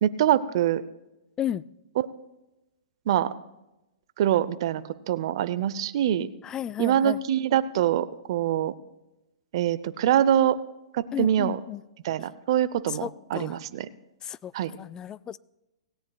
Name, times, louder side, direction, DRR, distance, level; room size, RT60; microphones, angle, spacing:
voice 1, 0.0-0.8 3.1-3.3 4.2-6.3 6.8-8.7 9.5-10.6 10.9-11.6 12.0-13.9 14.5-14.7, right 11 dB, 55° right, 0.6 m, -24 dB
voice 2, 6.4-7.2 11.1-11.8 12.9-13.6 14.2-14.5 14.8-15.4, left 10 dB, 20° left, 0.3 m, -33 dB
17.5 x 17.5 x 2.3 m
hypercardioid pair, 120°, 3 cm